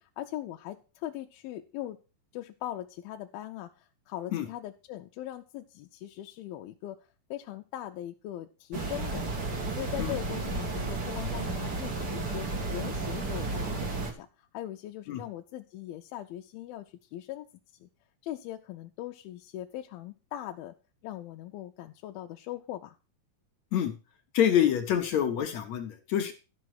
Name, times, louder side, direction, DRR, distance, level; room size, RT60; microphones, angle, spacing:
voice 1, 0.0-2.0 2.3-7.0 7.3-9.3 9.8-17.5 17.8-17.9 18.2-20.7 21.0-23.0, left 13 dB, 85° left, 4 dB, 2.5 m, -40 dB
sound 1, 8.7-14.1, right 3 dB, 40° right, 1.6 m, -33 dB
voice 2, 24.3-26.3, left 10 dB, 65° left, 6 dB, 2.0 m, -26 dB
12.5 x 6.1 x 6.0 m, 0.32 s
omnidirectional pair, 4.2 m